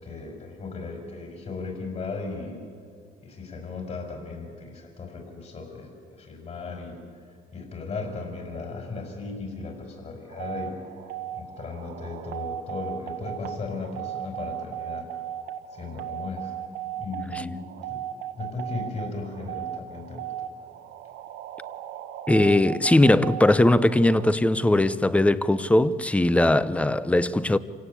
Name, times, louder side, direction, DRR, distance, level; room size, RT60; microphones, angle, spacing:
voice 1, 0.0-2.6 3.2-7.0 7.5-10.7 11.3-15.1 15.7-16.5 16.9-18.0 18.4-20.5, left 4 dB, 40° left, 5.6 m, -36 dB
sound 1, 10.3-24.3, right 12 dB, 85° right, 1.8 m, -36 dB
voice 2, 22.3-27.6, left 1 dB, 5° left, 0.7 m, -20 dB
27.5 x 17.0 x 8.5 m
cardioid pair, 110°, 17 cm